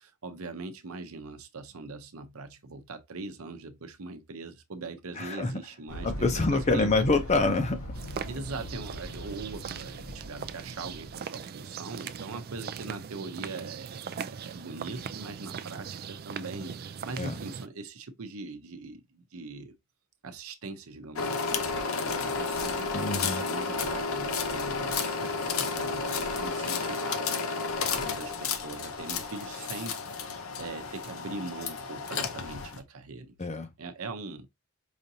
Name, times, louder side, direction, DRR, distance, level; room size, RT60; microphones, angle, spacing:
voice 1, 0.0-7.0 8.3-19.7 20.2-27.2 27.9-33.3 33.8-34.5, right 3 dB, 75° right, 0.7 m, -41 dB
voice 2, 5.2-5.5 6.0-7.8 17.2-17.3 22.9-23.4 33.4-33.7, left 3 dB, 30° left, 0.7 m, -26 dB
sound 1, 5.9-11.2, equal, 85° left, 3.0 m, -40 dB
sound 2, 7.9-17.7, right 7 dB, 45° right, 0.3 m, -40 dB
sound 3, 21.1-32.8, left 4 dB, 70° left, 0.7 m, -32 dB
5.0 x 2.6 x 2.7 m
head